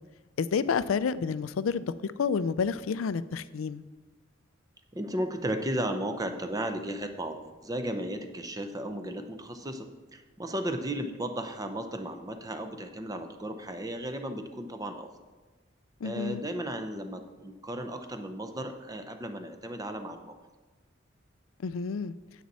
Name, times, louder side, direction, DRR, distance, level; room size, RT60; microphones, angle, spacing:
voice 1, 0.4-3.8 16.0-16.4 21.6-22.1, left 5 dB, 90° left, 15 dB, 0.4 m, -29 dB
voice 2, 4.9-15.1 16.0-20.4, right 1 dB, 20° right, 7 dB, 0.6 m, -35 dB
9.3 x 8.3 x 4.1 m, 1.3 s
head